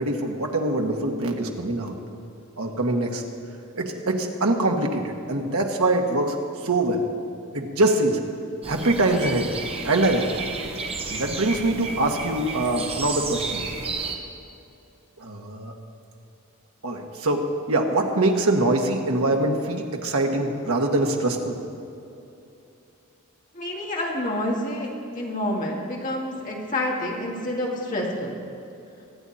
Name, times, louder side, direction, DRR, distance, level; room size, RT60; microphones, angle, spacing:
voice 1, 0.0-2.0 2.6-3.2 3.7-6.4 6.6-7.0 7.5-8.2 8.6-9.5 9.8-10.4 11.1-13.6 15.2-15.8 16.8-21.5, right 2 dB, 85° right, 2 dB, 1.5 m, -23 dB
sound 1, 8.6-14.2, right 4 dB, 25° right, 1.0 m, -32 dB
voice 2, 23.5-28.3, left 1 dB, 35° left, -2 dB, 2.2 m, -28 dB
23.5 x 8.9 x 4.3 m, 2.7 s
head